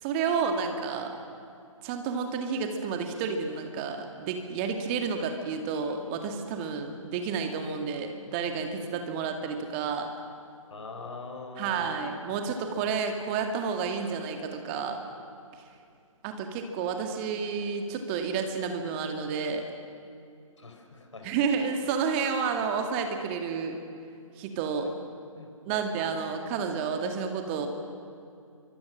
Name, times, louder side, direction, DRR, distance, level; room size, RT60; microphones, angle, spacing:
voice 1, 0.0-1.2 1.8-10.1 11.6-15.0 16.2-19.7 21.2-23.8 24.4-24.9 25.7-27.7, right 5 dB, 20° right, 5 dB, 2.2 m, -30 dB
voice 2, 10.7-12.1 12.3-12.5 20.6-21.3 25.4-25.9, left 3 dB, 60° left, 4 dB, 5.0 m, -43 dB
28.5 x 24.5 x 6.5 m, 2.5 s
figure-of-eight pair, 140°, 18 cm